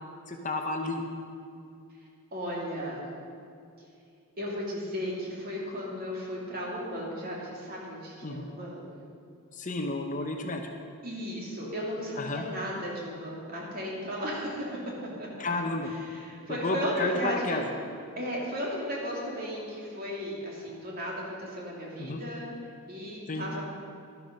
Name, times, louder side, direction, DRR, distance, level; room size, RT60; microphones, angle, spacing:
voice 1, 0.3-1.0 8.2-8.5 9.6-10.6 12.2-12.4 15.4-15.9 16.5-17.7 22.0-22.2 23.3-23.4, left 2 dB, 35° left, 3 dB, 0.8 m, -31 dB
voice 2, 2.3-3.0 4.4-8.8 11.0-14.8 15.2-15.3 15.8-17.6 18.2-22.5 22.9-23.6, equal, 40° right, -3 dB, 2.8 m, -35 dB
12.0 x 12.0 x 5.3 m, 2.5 s
head